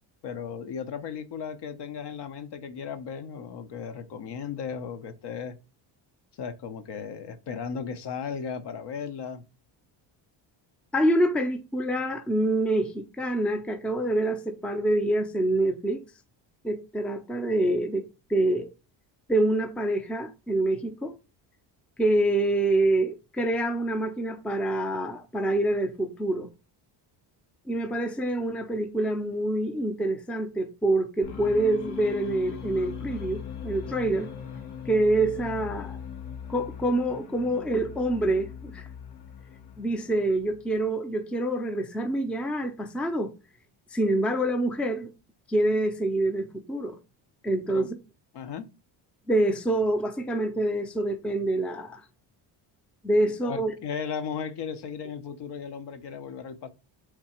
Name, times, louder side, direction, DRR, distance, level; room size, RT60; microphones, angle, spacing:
voice 1, 0.2-5.6 6.3-9.4 47.7-47.9 48.3-48.7 53.4-56.7, left 6 dB, 55° left, 0.8 m, -36 dB
voice 2, 10.9-16.0 16.6-18.7 19.3-21.2 22.0-26.5 27.7-34.3 34.9-36.0 36.5-38.9 39.8-43.3 43.9-45.1 45.5-47.0 47.4-47.9 49.3-52.0 53.0-53.7, right 1 dB, ahead, 0.5 m, -26 dB
sound 1, 31.2-40.8, left 8 dB, 80° left, 1.1 m, -40 dB
3.7 x 2.8 x 4.2 m
cardioid pair, 85°, 49 cm